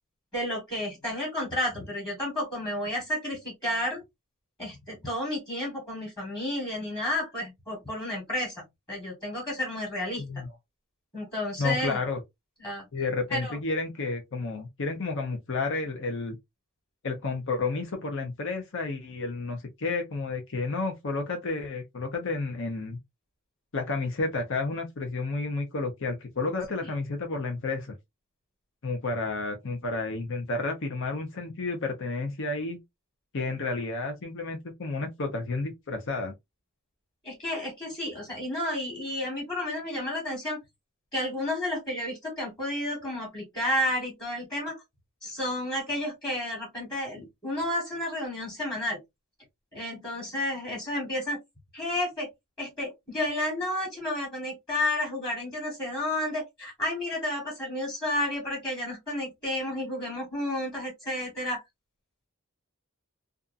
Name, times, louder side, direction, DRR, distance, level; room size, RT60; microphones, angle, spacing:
voice 1, 0.3-4.0 4.6-10.2 11.1-12.0 12.6-12.8 13.3-13.6 26.8-26.9 37.2-40.6 41.1-44.8 45.2-49.0 49.7-51.4 51.7-52.3 52.6-61.6, left 1 dB, 20° left, 1.4 m, -31 dB
voice 2, 10.2-10.5 11.6-12.2 12.9-16.4 17.0-23.0 23.7-28.0 28.8-32.8 33.3-36.3, left 3 dB, 65° left, 0.7 m, -31 dB
2.6 x 2.4 x 2.5 m
head